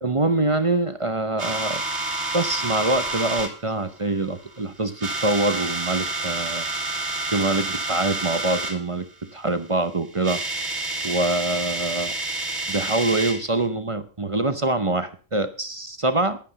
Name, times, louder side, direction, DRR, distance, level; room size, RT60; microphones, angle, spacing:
voice 1, 0.0-1.8 2.3-6.7 7.3-9.1 9.3-10.4 11.0-12.1 12.7-16.4, right 2 dB, 30° right, 11 dB, 0.7 m, -24 dB
sound 1, 1.4-3.5 4.2-4.6 4.9-8.8 9.9-10.0 10.1-13.5, right 2 dB, 55° right, 2.5 m, -29 dB
11.5 x 11.0 x 5.3 m, 0.37 s
omnidirectional pair, 1.4 m